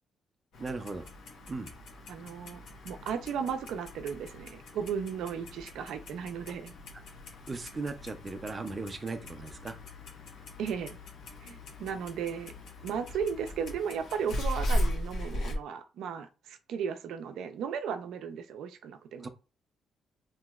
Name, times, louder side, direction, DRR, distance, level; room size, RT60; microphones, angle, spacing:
Clock, 0.5-15.6, left 1 dB, 75° left, 0.9 m, -38 dB
voice 1, 0.6-1.1 1.5-1.7 7.5-9.8 19.2-19.3, right 3 dB, 30° right, 0.5 m, -37 dB
voice 2, 2.1-6.7 10.6-11.0 11.4-12.5 12.8-19.3, right 7 dB, 80° right, 0.5 m, -35 dB
3.0 x 2.8 x 2.3 m
cardioid pair, 90°, 0 cm